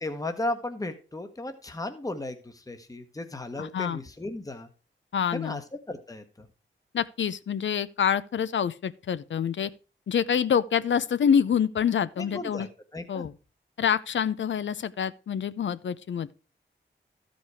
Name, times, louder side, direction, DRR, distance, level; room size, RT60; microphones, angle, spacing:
voice 1, 0.0-4.7 5.3-5.6 5.9-6.5 12.2-12.7 12.9-13.3, left 2 dB, 15° left, 1.1 m, -35 dB
voice 2, 3.6-4.0 5.1-5.6 6.9-9.7 10.1-12.7 13.1-13.3 13.8-16.3, left 8 dB, 70° left, 0.6 m, -26 dB
12.5 x 5.2 x 4.7 m
cardioid pair, 65°, 20 cm